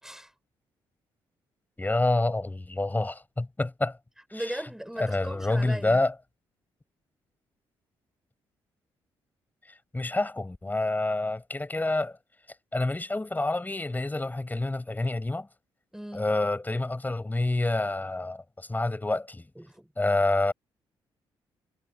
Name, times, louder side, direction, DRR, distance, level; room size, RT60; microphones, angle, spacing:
voice 1, 0.0-0.3 4.3-6.0 15.9-16.2 19.5-19.9, equal, 5° right, 5.1 m, -38 dB
voice 2, 1.8-4.0 4.3-4.6 5.0-6.1 9.7-12.2 12.7-15.5 16.1-19.5 20.0-20.5, left 2 dB, 15° left, 6.2 m, -28 dB
supercardioid pair, 65°, 10 cm